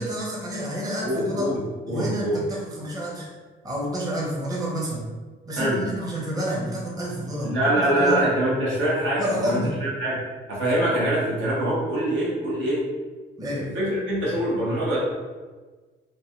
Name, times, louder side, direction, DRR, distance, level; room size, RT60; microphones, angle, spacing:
voice 1, 0.0-1.5 1.9-3.3 3.6-5.1 5.5-8.2 9.2-9.8 13.4-13.7, equal, 20° right, -4 dB, 0.7 m, -29 dB
voice 2, 1.0-1.6 1.8-2.4 5.6-5.8 7.4-10.2 10.5-12.8 13.6-15.0, right 1 dB, 75° right, -7 dB, 1.2 m, -24 dB
3.0 x 2.3 x 2.7 m, 1.3 s
cardioid pair, 90°, 20 cm